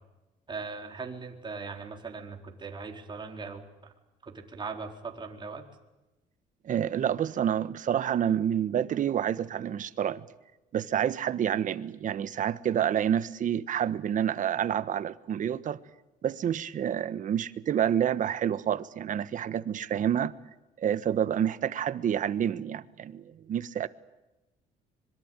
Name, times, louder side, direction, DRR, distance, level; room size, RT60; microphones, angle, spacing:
voice 1, 0.5-3.7 4.3-5.6, right 4 dB, 25° right, 4.2 m, -39 dB
voice 2, 6.6-10.2 10.7-15.8 16.2-20.3 20.8-23.9, right 9 dB, 50° right, 1.3 m, -28 dB
25.5 x 22.5 x 9.1 m
cardioid pair, 110°, 17 cm